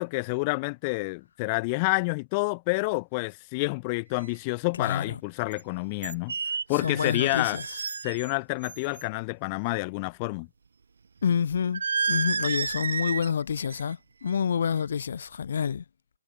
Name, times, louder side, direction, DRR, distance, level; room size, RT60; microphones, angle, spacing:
voice 1, 0.0-6.3 6.7-7.6 8.0-10.5, left 28 dB, 25° left, 1.3 m, -28 dB
sound 1, 4.2-4.3 5.5-5.6 6.0-8.3 8.6-9.0 11.7-13.3 13.6-13.9 14.3-14.6, right 5 dB, 75° right, 1.1 m, -31 dB
voice 2, 4.8-5.2 6.7-7.6 11.2-15.8, left 7 dB, 55° left, 1.7 m, -28 dB
hypercardioid pair, 160°, 0 cm